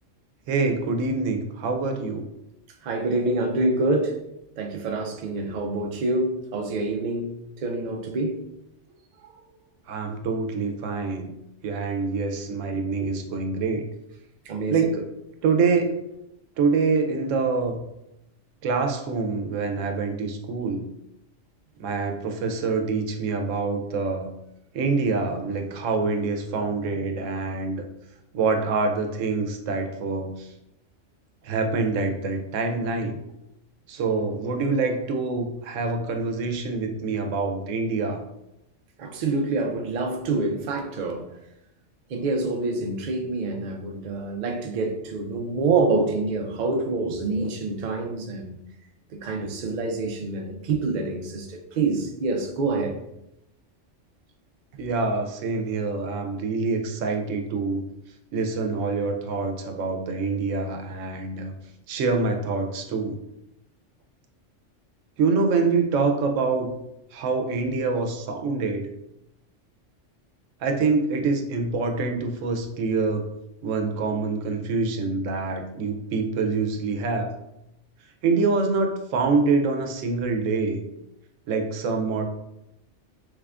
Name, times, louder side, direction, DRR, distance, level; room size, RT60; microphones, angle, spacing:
voice 1, 0.5-2.2 9.9-11.3 11.6-13.8 14.7-15.1 15.4-16.0 16.6-17.8 18.6-20.8 21.8-24.3 24.7-27.8 28.3-30.5 31.4-33.2 33.9-38.2 54.8-57.8 58.3-61.5 61.9-63.2 65.2-66.7 67.1-68.9 70.6-73.2 73.6-77.3 78.2-80.8 81.5-82.2, right 4 dB, 85° right, 4 dB, 0.9 m, -25 dB
voice 2, 2.8-4.2 4.6-7.3 7.6-8.4 14.5-14.8 39.0-41.3 42.1-48.6 49.1-53.0, right 3 dB, 60° right, 2 dB, 0.5 m, -26 dB
3.4 x 3.3 x 2.4 m, 0.86 s
omnidirectional pair, 1.3 m